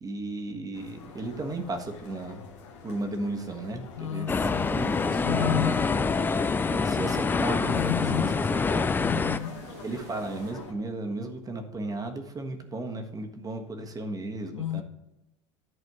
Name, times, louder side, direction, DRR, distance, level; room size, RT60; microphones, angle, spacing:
voice 1, 0.0-2.4 2.8-8.9 9.8-14.8, right 2 dB, 20° right, 1.4 m, -35 dB
sound 1, 0.7-10.7, left 5 dB, 70° left, 1.5 m, -46 dB
voice 2, 4.0-4.7 5.2-5.9 7.7-8.3 9.0-9.6 14.5-14.8, left 9 dB, 85° left, 0.6 m, -31 dB
sound 2, 4.3-9.4, left 4 dB, 10° left, 0.3 m, -26 dB
sound 3, 4.4-10.5, right 4 dB, 45° right, 1.6 m, -47 dB
11.0 x 4.2 x 6.1 m
hypercardioid pair, 90°, 16 cm